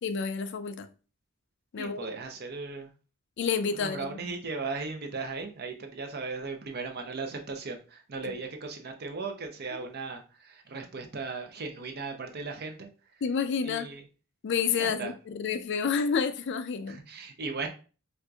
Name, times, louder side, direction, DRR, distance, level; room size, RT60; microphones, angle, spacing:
voice 1, 0.0-0.9 1.7-2.1 3.4-4.1 8.2-8.3 9.7-9.8 13.2-13.9 14.4-17.0, left 6 dB, 60° left, 0.4 m, -29 dB
voice 2, 1.8-2.9 3.8-12.9 13.6-14.0 14.8-15.1 16.9-17.7, right 4 dB, 50° right, 0.6 m, -37 dB
4.4 x 2.5 x 2.3 m
head